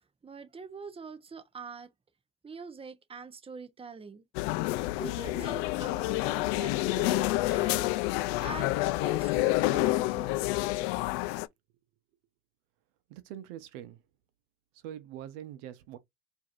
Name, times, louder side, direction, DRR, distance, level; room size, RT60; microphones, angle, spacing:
voice 1, 0.2-1.9 2.4-4.2 5.0-7.9 8.4-10.4, right 5 dB, 15° right, 0.8 m, -44 dB
sound 1, 4.3-11.5, left 19 dB, 75° left, 0.5 m, -28 dB
voice 2, 13.1-14.0 14.8-16.0, right 11 dB, 80° right, 0.8 m, -43 dB
4.7 x 2.8 x 2.5 m
supercardioid pair, 105°, 37 cm